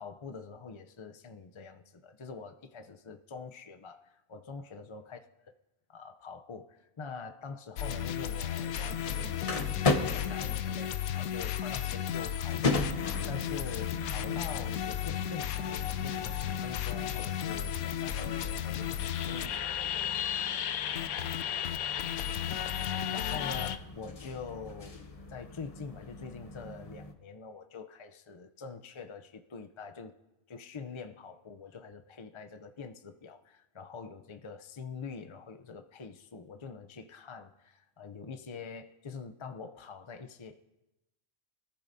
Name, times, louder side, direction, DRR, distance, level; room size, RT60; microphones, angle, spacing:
voice 1, 0.0-5.5 5.9-20.1 23.1-25.0 25.3-30.1 30.5-40.7, left 5 dB, 45° left, 7 dB, 0.3 m, -45 dB
sound 1, 7.8-23.8, left 10 dB, 90° left, 1.1 m, -34 dB
sound 2, 8.5-27.1, left 3 dB, 30° left, 0.8 m, -38 dB
24.5 x 14.0 x 2.7 m, 1.0 s
omnidirectional pair, 1.4 m